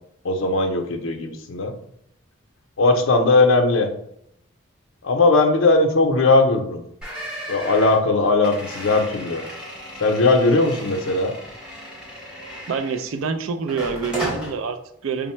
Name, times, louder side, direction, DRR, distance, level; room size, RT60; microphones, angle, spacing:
voice 1, 0.2-1.7 2.8-3.9 5.0-6.8 7.5-9.4 10.0-11.3, left 3 dB, 70° left, 5 dB, 0.5 m, -18 dB
sound 1, 7.0-13.2 13.7-14.5, equal, 5° right, 0.8 m, -35 dB
voice 2, 12.7-15.3, right 5 dB, 75° right, 8 dB, 0.3 m, -27 dB
3.5 x 2.1 x 4.3 m, 0.73 s
head